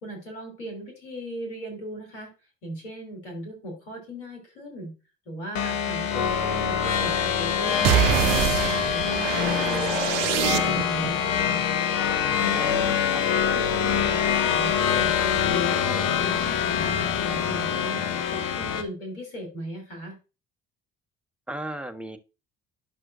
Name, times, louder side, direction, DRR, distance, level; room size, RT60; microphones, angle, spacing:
voice 1, 0.0-2.3 2.6-4.9 5.3-8.6 8.9-11.6 12.4-13.0 13.5-18.0 18.3-20.2, right 1 dB, 85° left, 2 dB, 3.3 m, -37 dB
sound 1, 5.6-18.8, left 8 dB, 70° left, 1.1 m, -25 dB
sound 2, 7.8-11.1, right 10 dB, 80° right, 0.6 m, -25 dB
voice 2, 12.5-13.2 21.5-22.2, right 1 dB, 5° right, 7 dB, 1.0 m, -36 dB
10.5 x 6.0 x 2.5 m, 0.31 s
hypercardioid pair, 60°, 35 cm